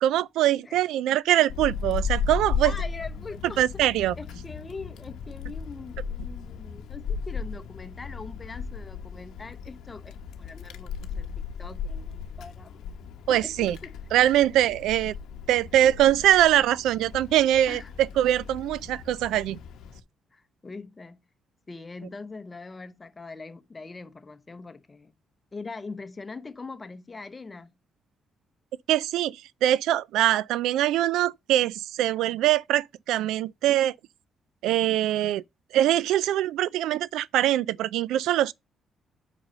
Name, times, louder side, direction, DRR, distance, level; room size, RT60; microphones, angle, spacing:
voice 1, 0.0-2.7 3.6-4.1 13.3-13.8 14.1-15.1 15.5-19.6 28.9-33.9 34.6-35.4 35.7-38.5, right 12 dB, 90° right, 0.3 m, -23 dB
Wind, 1.5-20.0, left 6 dB, 80° left, 0.8 m, -36 dB
voice 2, 2.6-3.8 4.2-11.3 11.6-12.8 13.3-13.9 17.7-17.9 20.3-21.2 21.7-25.1 25.5-27.7, left 3 dB, 25° left, 1.0 m, -42 dB
5.3 x 4.8 x 5.2 m
cardioid pair, 90°, 0 cm